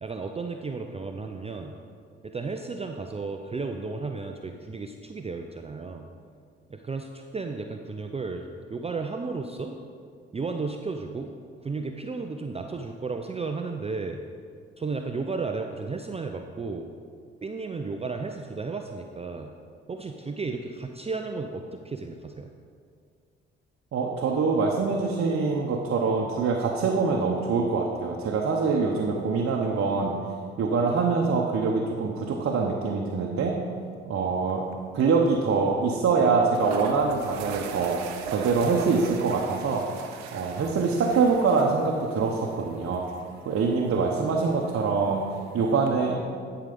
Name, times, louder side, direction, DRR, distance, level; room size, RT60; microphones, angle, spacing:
voice 1, 0.0-1.8 2.2-6.1 6.7-9.7 10.3-11.3 11.6-14.2 14.8-16.9 17.4-19.5 19.9-22.5, right 4 dB, 20° right, 4 dB, 0.5 m, -33 dB
voice 2, 23.9-30.1 30.6-33.6 34.0-34.6 34.9-38.0 38.3-40.0 40.3-43.0 43.5-45.2 45.5-46.2, right 4 dB, 45° right, 0 dB, 0.9 m, -24 dB
sound 1, 34.5-34.7 35.0-35.1 36.1-36.2 36.5-45.9, right 6 dB, 80° right, 0.7 m, -41 dB
10.5 x 4.9 x 5.2 m, 2.2 s
hypercardioid pair, 45°, 30 cm